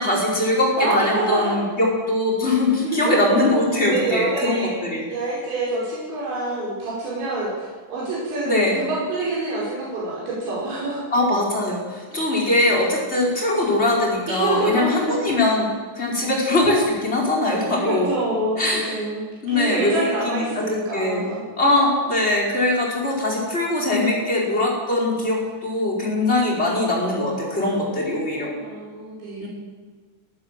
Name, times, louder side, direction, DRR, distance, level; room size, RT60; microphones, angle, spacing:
voice 1, 0.0-5.0 8.4-8.8 11.1-15.7 15.9-18.1 18.6-19.0 19.4-21.2 21.6-28.5 29.4-29.5, left 2 dB, 15° left, -3 dB, 4.8 m, -21 dB
voice 2, 0.8-1.6 2.8-3.2 3.7-4.7 5.1-11.0 14.3-15.2 17.8-21.4 27.5-29.5, right 2 dB, 80° right, -7 dB, 7.6 m, -27 dB
23.5 x 14.5 x 7.7 m, 1.5 s
omnidirectional pair, 5.1 m